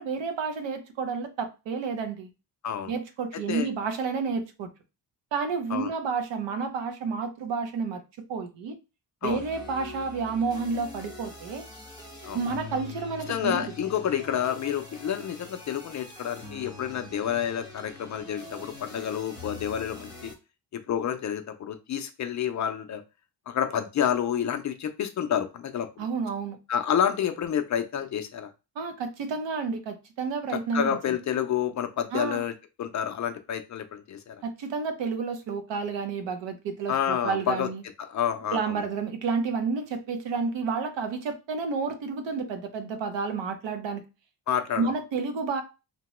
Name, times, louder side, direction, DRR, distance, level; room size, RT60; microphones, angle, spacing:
voice 1, 0.0-2.3 2.9-4.7 5.3-8.0 8.3-8.8 9.2-11.6 12.3-13.6 26.0-26.6 28.8-31.0 32.1-32.4 34.4-37.8 38.5-44.0 44.8-45.6, right 5 dB, 85° right, 0.8 m, -30 dB
voice 2, 3.3-3.7 5.7-5.9 9.2-9.4 12.3-12.4 13.3-20.3 20.7-23.0 23.5-26.0 26.7-28.5 30.5-34.4 36.9-37.7 38.0-38.8 44.5-44.9, left 9 dB, 45° left, 0.4 m, -29 dB
sound 1, 9.2-20.3, left 3 dB, 10° right, 1.0 m, -44 dB
2.9 x 2.1 x 3.0 m
cardioid pair, 150°, 43 cm